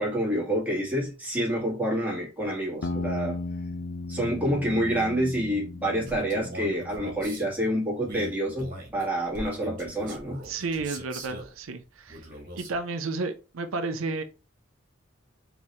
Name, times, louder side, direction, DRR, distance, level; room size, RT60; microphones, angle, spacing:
voice 1, 0.0-3.4 4.1-10.4, equal, 10° right, 1.9 m, -28 dB
sound 1, 2.8-7.5, left 3 dB, 65° left, 0.5 m, -36 dB
Male speech man speaking, 6.1-7.4 8.0-11.5 12.1-12.8, right 1 dB, 45° right, 1.6 m, -41 dB
voice 2, 10.4-12.2 12.6-14.2, right 3 dB, 85° right, 0.6 m, -32 dB
4.3 x 3.4 x 3.0 m
head